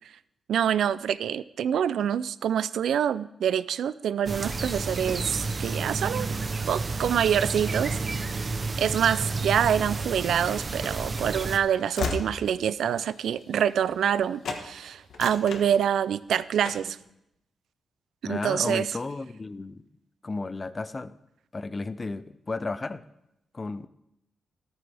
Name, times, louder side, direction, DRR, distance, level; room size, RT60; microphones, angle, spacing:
voice 1, 0.5-6.3 6.7-8.0 8.8-17.0 18.2-18.9, right 9 dB, 90° right, 16 dB, 0.4 m, -26 dB
sound 1, 4.3-11.6, right 3 dB, 35° right, 0.8 m, -31 dB
Train / Slam, 10.5-14.2 14.4-14.7 15.0-16.2 16.6-17.0, left 4 dB, 80° left, 1.4 m, -36 dB
voice 2, 18.2-19.8 20.2-21.2 21.5-23.0 23.5-23.9, left 3 dB, 25° left, 14 dB, 0.5 m, -33 dB
13.5 x 13.5 x 3.5 m, 0.83 s
wide cardioid pair, 120°, 0 cm